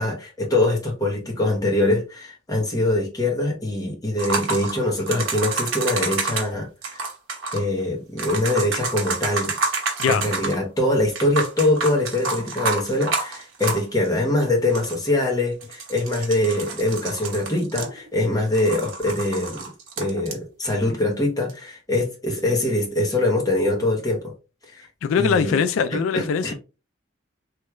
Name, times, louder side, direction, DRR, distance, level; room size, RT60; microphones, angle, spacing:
voice 1, 0.0-7.1 7.5-9.5 10.1-19.7 20.0-24.3 24.7-24.9 25.2-25.6 25.9-26.5, left 1 dB, 20° left, 0.9 m, -23 dB
sound 1, 4.2-6.5 6.8-7.6 8.2-10.6 11.1-14.1 14.4-14.5 14.7-15.1 15.6-18.2 18.5-20.4 21.5-21.6, right 3 dB, 80° right, 0.9 m, -29 dB
voice 2, 25.0-26.5, left 6 dB, 90° left, 0.3 m, -21 dB
3.1 x 2.3 x 3.0 m
head